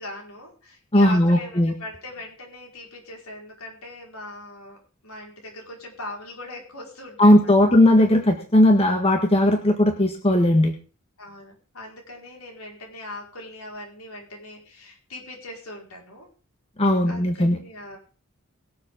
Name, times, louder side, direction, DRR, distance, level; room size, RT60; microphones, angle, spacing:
voice 1, 0.0-4.8 5.0-7.8 11.2-16.3 17.1-18.0, left 1 dB, 80° left, 0 dB, 5.1 m, -40 dB
voice 2, 0.9-1.7 7.2-10.7 16.8-17.6, left 1 dB, 25° left, 4 dB, 1.7 m, -17 dB
22.0 x 7.8 x 3.8 m, 0.37 s
head